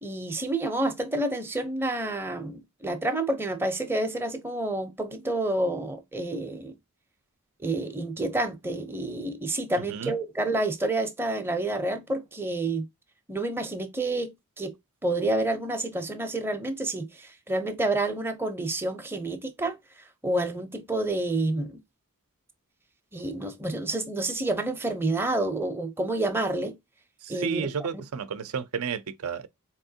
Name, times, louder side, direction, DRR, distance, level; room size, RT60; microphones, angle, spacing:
voice 1, 0.0-6.7 7.6-12.9 13.3-14.7 15.0-19.8 20.2-21.8 23.1-26.8 27.3-27.7, right 2 dB, 10° right, 0.6 m, -29 dB
voice 2, 27.2-29.5, right 6 dB, 70° right, 0.5 m, -32 dB
4.3 x 2.9 x 2.7 m
head